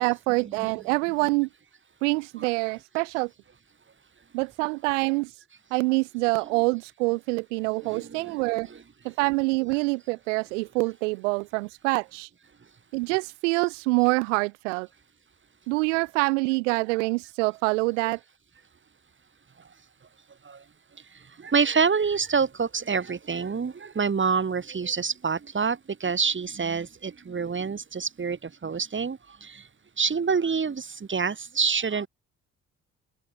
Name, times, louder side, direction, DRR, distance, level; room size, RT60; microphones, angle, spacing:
voice 1, 0.0-1.5 2.0-3.3 4.3-5.3 5.7-8.7 9.0-12.3 12.9-14.9 15.7-18.2, right 26 dB, 90° right, 0.6 m, -26 dB
voice 2, 7.8-8.8 20.4-20.6 21.1-29.7 30.0-32.1, right 5 dB, 35° right, 1.8 m, -27 dB
hypercardioid pair, 50°, 36 cm